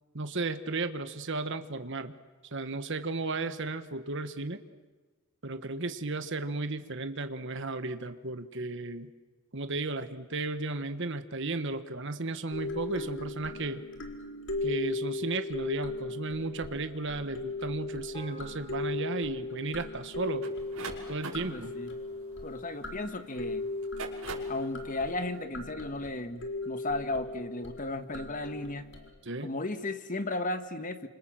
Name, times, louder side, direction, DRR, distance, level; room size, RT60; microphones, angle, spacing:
voice 1, 0.1-2.2 2.5-4.6 5.4-9.1 9.5-13.8 14.6-20.5 21.1-21.7 29.2-29.5, right 3 dB, 55° right, 9 dB, 1.4 m, -34 dB
sound 1, 12.5-29.1, left 2 dB, 55° left, 4.1 m, -37 dB
sound 2, 18.1-22.7, right 1 dB, 20° left, 6.6 m, -54 dB
sound 3, 20.4-23.1 23.7-24.6, right 4 dB, 75° right, 5.8 m, -42 dB
voice 2, 21.5-21.9 22.4-23.7 24.5-28.9 29.4-31.1, left 2 dB, 35° left, 9 dB, 1.7 m, -35 dB
28.5 x 27.0 x 7.7 m, 1.3 s
head